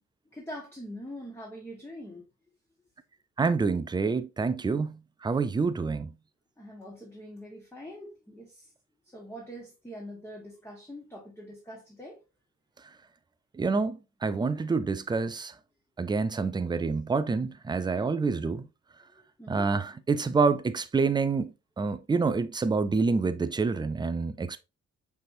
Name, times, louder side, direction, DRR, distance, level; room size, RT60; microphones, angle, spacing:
voice 1, 0.3-2.2 6.6-8.7 9.1-12.2 19.1-19.7, equal, 10° left, 1.4 m, -43 dB
voice 2, 3.4-6.1 13.6-15.5 16.0-18.7 19.5-24.6, right 4 dB, 15° right, 0.4 m, -27 dB
5.8 x 3.4 x 2.6 m
cardioid pair, 90°, 30 cm